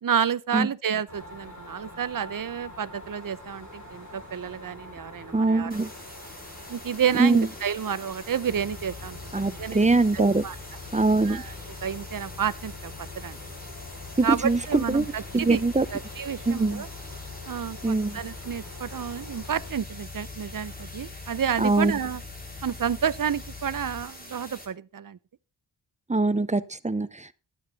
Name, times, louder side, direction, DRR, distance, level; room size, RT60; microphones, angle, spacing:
voice 1, 0.0-5.7 6.7-9.9 10.1-10.6 11.2-11.5 11.8-13.4 14.2-15.6 15.9-16.9 17.5-22.2 22.6-25.2, right 8 dB, 50° right, 0.7 m, -30 dB
sound 1, 1.1-19.7, left 2 dB, 45° left, 6.6 m, -46 dB
voice 2, 5.3-5.9 7.2-7.5 9.3-10.4 10.9-11.4 14.2-15.0 15.3-15.9 16.5-16.8 17.8-18.2 21.6-21.9 26.1-27.3, right 3 dB, 15° right, 0.7 m, -23 dB
sound 2, 5.7-24.7, left 1 dB, 20° left, 4.5 m, -45 dB
sound 3, 8.4-24.0, left 5 dB, 60° left, 5.9 m, -43 dB
12.5 x 9.0 x 4.1 m
wide cardioid pair, 70°, 42 cm